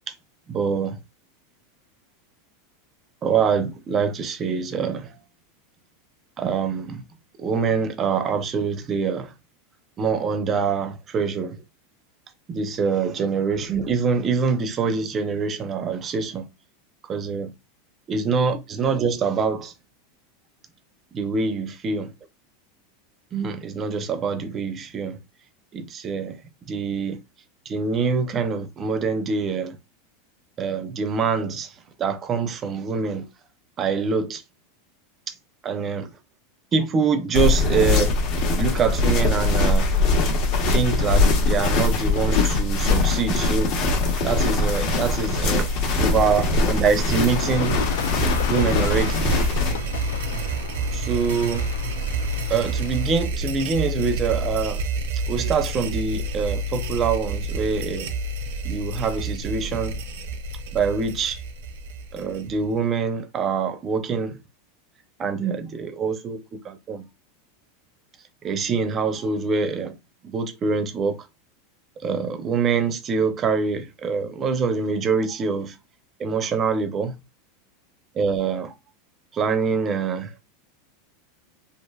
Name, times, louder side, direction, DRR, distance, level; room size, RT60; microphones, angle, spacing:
voice 1, 0.5-1.0 3.2-5.1 6.4-7.0 7.4-9.3 10.0-11.6 12.5-16.5 17.1-17.5 18.1-19.7 21.1-22.1 23.3-25.2 25.7-26.4 26.7-27.2 27.7-29.8 30.6-31.7 32.0-33.3 33.8-34.4 35.6-36.1 36.7-38.2 38.6-39.9 40.7-43.8 44.2-45.7 46.0-47.8 48.5-49.3 50.9-51.7 52.5-54.8 55.3-58.1 58.6-60.0 60.7-61.4 62.1-64.4 65.2-67.0 68.4-70.0 70.2-71.2 72.0-75.8 76.2-77.1 78.2-78.7 79.3-80.4, right 5 dB, 25° right, 0.4 m, -25 dB
sound 1, 37.3-49.7, left 2 dB, 50° left, 0.8 m, -21 dB
sound 2, 44.0-62.8, right 2 dB, 75° right, 0.5 m, -30 dB
sound 3, 47.0-53.3, left 7 dB, 85° left, 0.3 m, -33 dB
3.2 x 2.4 x 2.2 m
supercardioid pair, 150°, 0 cm